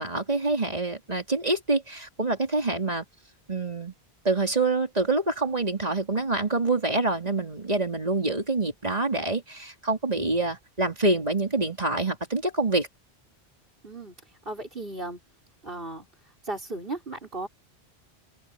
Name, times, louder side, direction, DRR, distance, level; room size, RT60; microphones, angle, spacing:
voice 1, 0.0-3.1 3.5-3.9 4.2-12.9, right 2 dB, 40° right, 3.8 m, -26 dB
voice 2, 13.8-14.1 14.5-15.2 15.6-16.1 16.4-17.5, right 2 dB, 55° right, 5.8 m, -35 dB
open air
omnidirectional pair, 1.1 m